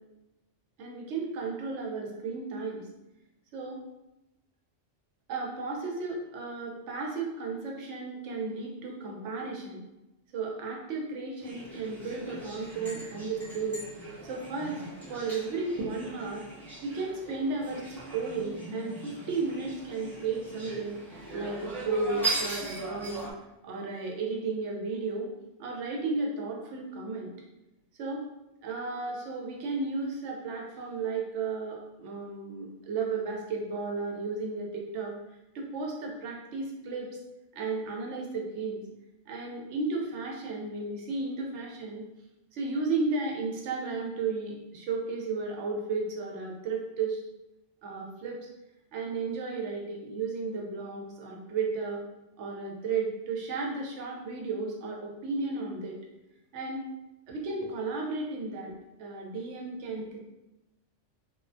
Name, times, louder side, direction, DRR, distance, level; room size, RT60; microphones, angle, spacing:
voice 1, 0.8-2.8 3.5-3.8 5.3-9.8 10.3-13.8 14.2-14.8 15.1-16.5 16.8-17.9 18.1-21.0 21.3-23.3 23.6-25.3 25.6-27.3 28.0-28.2 28.6-35.1 35.5-37.1 37.5-38.8 39.3-42.0 42.5-47.2 47.8-48.5 48.9-52.0 52.4-56.0 56.5-56.9 57.3-58.7 59.0-60.2, right 4 dB, 75° right, -1 dB, 0.9 m, -34 dB
sound 1, 11.4-23.3, right 2 dB, 5° left, 0.3 m, -39 dB
2.3 x 2.1 x 2.5 m, 0.95 s
omnidirectional pair, 1.2 m